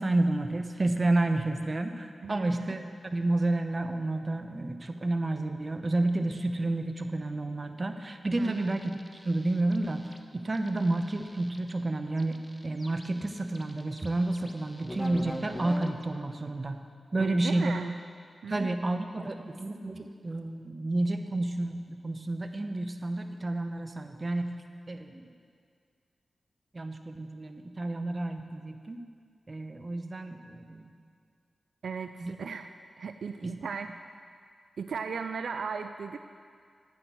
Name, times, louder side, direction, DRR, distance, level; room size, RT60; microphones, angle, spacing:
voice 1, 0.0-8.9 9.3-10.0 10.3-16.8 17.1-17.7 18.5-24.6 24.9-25.3 26.7-29.0 29.5-30.9 32.2-32.4 33.4-33.5, right 2 dB, 40° right, 7 dB, 0.8 m, -30 dB
voice 2, 2.2-2.7 8.4-8.7 17.2-18.0 18.4-18.8 31.8-32.7 33.0-33.9 34.8-36.2, right 5 dB, 85° right, 8 dB, 0.3 m, -36 dB
sound 1, 8.4-10.2 10.5-11.7 12.2-16.0, left 1 dB, 10° left, 1.0 m, -43 dB
9.1 x 6.0 x 8.1 m, 2.1 s
cardioid pair, 50°, 0 cm